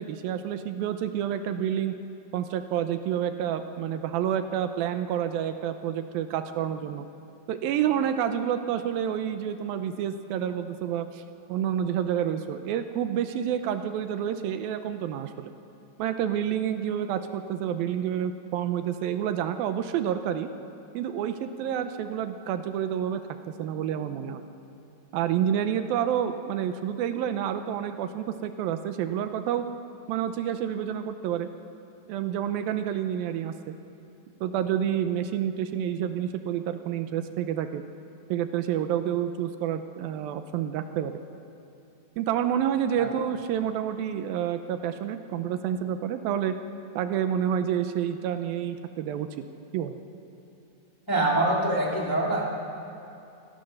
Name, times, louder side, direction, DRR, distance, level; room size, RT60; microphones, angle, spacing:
voice 1, 0.0-1.9 2.3-7.1 7.5-11.2 11.5-15.5 16.0-20.5 20.9-23.2 23.5-24.4 25.1-29.6 30.1-31.5 32.1-33.8 34.4-37.8 38.3-41.2 42.2-46.6 47.0-49.3 49.7-50.0, right 9 dB, 80° right, 9 dB, 2.5 m, -29 dB
voice 2, 51.1-52.5, right 2 dB, 5° left, -2 dB, 1.7 m, -24 dB
27.5 x 15.5 x 6.5 m, 2.7 s
omnidirectional pair, 4.2 m